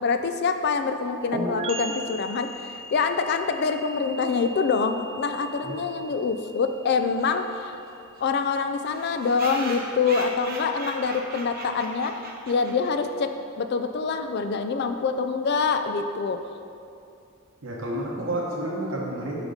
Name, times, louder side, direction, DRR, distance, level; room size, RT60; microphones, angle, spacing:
voice 1, 0.0-7.7 8.2-12.1 12.5-16.4, left 5 dB, 50° left, 8 dB, 0.4 m, -25 dB
sound 1, 1.3-8.9, right 2 dB, 30° right, 0.4 m, -38 dB
sound 2, 7.2-7.3 7.5-7.6 7.9-8.0 8.2-8.3 8.9-13.1, right 3 dB, 45° right, 0.8 m, -38 dB
voice 2, 17.6-19.4, right 1 dB, 65° right, -3 dB, 1.0 m, -30 dB
6.3 x 5.0 x 5.0 m, 2.5 s
head